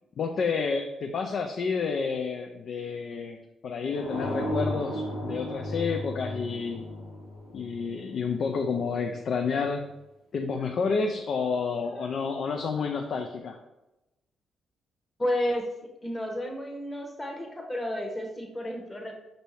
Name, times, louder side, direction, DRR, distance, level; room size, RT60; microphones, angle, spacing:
voice 1, 0.2-3.4 3.6-6.8 7.5-9.9 10.3-13.6, left 5 dB, 60° left, 3 dB, 0.4 m, -30 dB
sound 1, 3.9-8.7, equal, 75° left, 0.9 m, -34 dB
voice 2, 15.2-15.7 16.0-19.1, left 1 dB, 25° left, 2 dB, 1.1 m, -31 dB
5.5 x 2.6 x 3.2 m, 0.96 s
hypercardioid pair, 45°, 0 cm